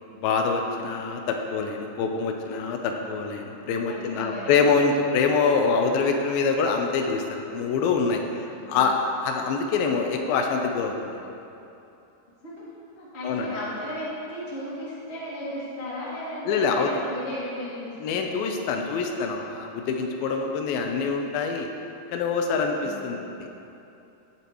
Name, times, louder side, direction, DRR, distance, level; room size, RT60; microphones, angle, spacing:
voice 1, 0.2-11.2 13.2-13.5 16.5-16.9 18.0-21.7 22.1-23.3, left 5 dB, 85° left, 3 dB, 2.1 m, -25 dB
voice 2, 3.8-4.6 8.7-8.8 12.4-12.6 12.9-18.3 22.8-23.2, left 1 dB, 25° left, -8 dB, 1.5 m, -35 dB
17.5 x 8.5 x 3.1 m, 2.8 s
omnidirectional pair, 5.2 m